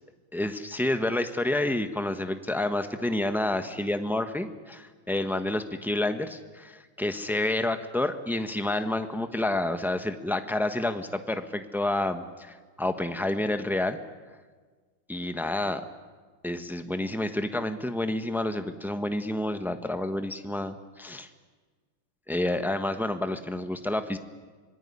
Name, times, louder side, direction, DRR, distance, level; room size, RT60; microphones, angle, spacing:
voice 1, 0.3-14.0 15.1-15.8 16.4-21.3 22.3-24.2, left 1 dB, ahead, 8 dB, 0.7 m, -29 dB
25.5 x 20.5 x 9.9 m, 1.4 s
omnidirectional pair, 2.3 m